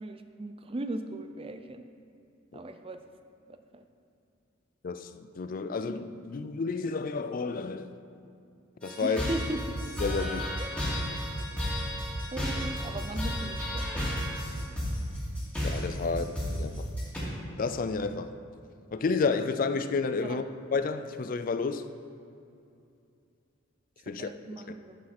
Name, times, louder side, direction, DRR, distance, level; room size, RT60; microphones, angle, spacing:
voice 1, 0.0-1.8 2.5-3.0 3.5-3.8 9.0-9.8 12.3-14.0 14.6-14.7 16.0-16.2 20.2-20.4 24.2-25.0, right 2 dB, 25° right, 8 dB, 0.5 m, -38 dB
voice 2, 5.4-7.9 8.8-9.2 10.0-10.6 15.6-16.9 17.6-18.3 18.9-20.4 20.7-21.9 24.1-24.3 24.7-24.8, left 4 dB, 45° left, 10 dB, 0.4 m, -31 dB
sound 1, 8.8-17.2, equal, 5° left, 2.3 m, -32 dB
11.0 x 6.4 x 4.3 m, 2.5 s
head